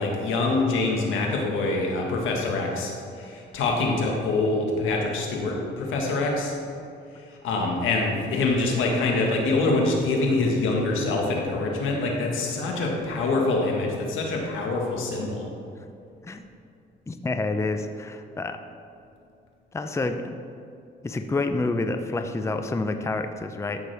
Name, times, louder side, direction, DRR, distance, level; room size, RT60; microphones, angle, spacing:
voice 1, 0.0-2.9 3.2-6.5 7.4-15.4, left 3 dB, 85° left, 0 dB, 1.6 m, -25 dB
voice 2, 17.1-18.6 19.7-20.4 21.0-23.8, left 3 dB, 15° left, 7 dB, 0.5 m, -28 dB
13.5 x 6.1 x 3.4 m, 2.6 s
cardioid pair, 90°, 20 cm